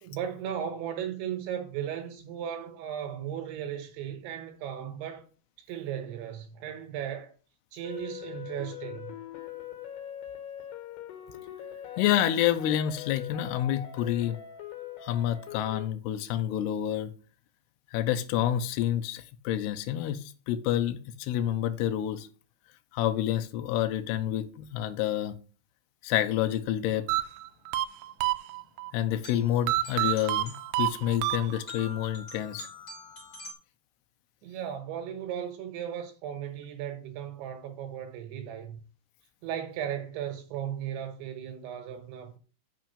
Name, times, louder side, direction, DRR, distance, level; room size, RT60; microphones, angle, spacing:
voice 1, 0.0-5.2 5.6-7.3 7.7-9.1 34.4-38.8 39.4-42.4, right 9 dB, 75° right, 3.3 m, -36 dB
sound 1, 7.8-15.8, left 10 dB, 70° left, 2.8 m, -42 dB
voice 2, 12.0-14.4 15.0-17.1 17.9-22.3 22.9-25.4 26.0-27.1 28.9-32.7, left 11 dB, 85° left, 2.3 m, -28 dB
sound 2, 27.1-33.5, left 2 dB, 30° left, 2.7 m, -46 dB
sound 3, 27.1-28.9 29.7-31.9, right 16 dB, 90° right, 2.6 m, -29 dB
6.8 x 6.1 x 6.9 m
omnidirectional pair, 5.9 m